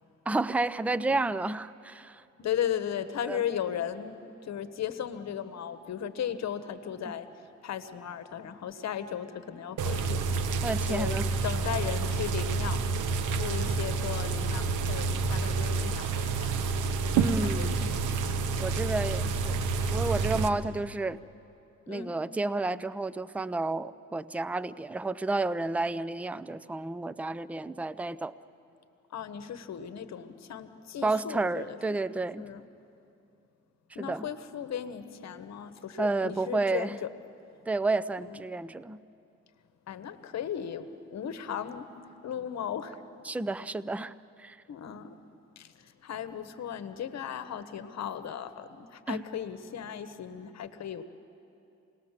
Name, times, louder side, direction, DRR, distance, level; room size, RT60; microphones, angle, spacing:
voice 1, 0.3-2.2 3.3-3.4 7.0-7.1 10.6-11.3 17.1-17.9 18.6-19.6 19.9-21.2 21.9-28.3 31.0-32.5 34.0-34.3 36.0-37.0 37.7-39.0 43.2-44.1 44.4-44.6 49.1-49.2, right 3 dB, 5° right, 15 dB, 0.5 m, -31 dB
voice 2, 2.4-7.3 7.6-10.3 10.9-12.8 13.2-16.7 17.4-18.1 20.5-20.8 21.9-22.1 29.1-32.0 32.4-32.6 33.9-36.9 38.2-38.4 39.9-41.9 42.2-43.0 44.7-45.2 45.6-51.0, left 9 dB, 60° left, 11 dB, 1.2 m, -36 dB
sound 1, 9.8-20.5, right 4 dB, 80° right, 1.1 m, -29 dB
27.5 x 19.5 x 7.4 m, 2.7 s
cardioid pair, 90°, 30 cm